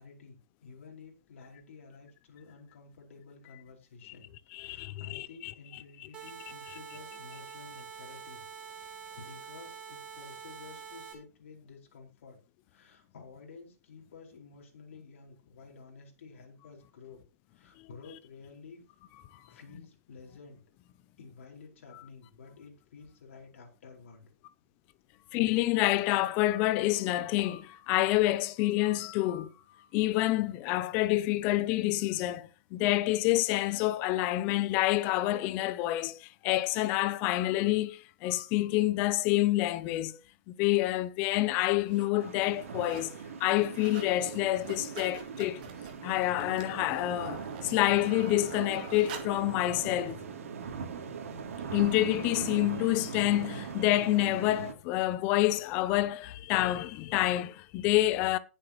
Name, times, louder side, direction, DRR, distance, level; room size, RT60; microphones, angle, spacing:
voice 1, 0.0-4.3 4.6-8.4 8.7-12.4 12.7-17.2 17.5-18.8 19.5-20.6 21.2-24.3, left 4 dB, 50° left, 4.7 m, -52 dB
voice 2, 4.5-5.5 25.3-29.5 29.9-40.2 40.5-43.1 43.4-45.6 46.0-50.2 51.7-58.4, left 16 dB, 15° left, 0.4 m, -28 dB
sound 1, 6.1-11.1, right 7 dB, 10° right, 2.3 m, -46 dB
sound 2, 40.8-41.0 41.7-42.1 42.4-43.1 43.4-44.1 44.5-49.4 50.1-50.2, right 6 dB, 35° right, 2.3 m, -47 dB
sound 3, 42.2-54.7, right 6 dB, 60° right, 2.9 m, -40 dB
19.5 x 7.7 x 3.0 m
hypercardioid pair, 180°, 8 cm